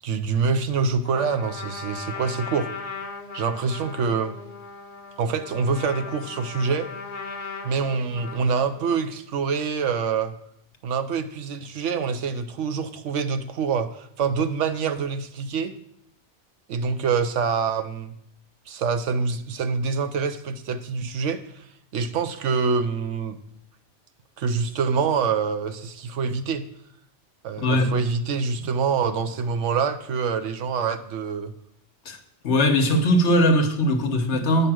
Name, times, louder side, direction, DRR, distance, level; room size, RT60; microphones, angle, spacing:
voice 1, 0.0-2.7 3.3-4.4 5.2-6.9 7.6-10.3 10.8-15.7 16.7-18.1 18.7-21.4 21.9-23.4 24.4-26.7 27.4-31.5, right 5 dB, 80° right, 1.1 m, -25 dB
Trumpet, 1.0-9.1, left 4 dB, 45° left, 1.1 m, -38 dB
voice 2, 27.6-28.0 32.0-32.2 32.4-34.7, equal, 70° left, 1.3 m, -20 dB
8.8 x 5.5 x 6.1 m
omnidirectional pair, 1.2 m